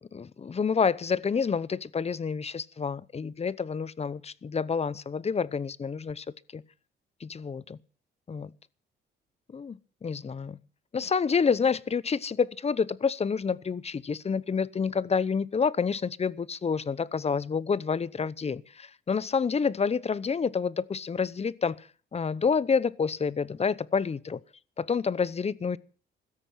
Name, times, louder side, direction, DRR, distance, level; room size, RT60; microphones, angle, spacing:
voice 1, 0.0-6.3 6.5-6.6 7.2-7.8 8.3-8.5 9.5-10.6 10.9-24.4 24.8-25.8, left 5 dB, 30° left, 0.9 m, -28 dB
16.0 x 13.5 x 5.8 m
cardioid pair, 90°, 20 cm